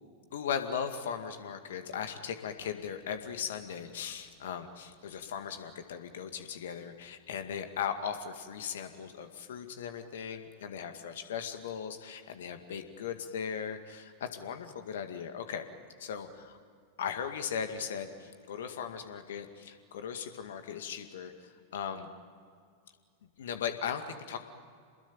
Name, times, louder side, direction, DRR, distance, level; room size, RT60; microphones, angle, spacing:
voice 1, 0.3-15.7 16.0-16.6 17.0-22.1 23.4-24.4, left 7 dB, 60° left, 7 dB, 2.1 m, -38 dB
27.5 x 21.0 x 9.2 m, 2.1 s
figure-of-eight pair, 90°, 0 cm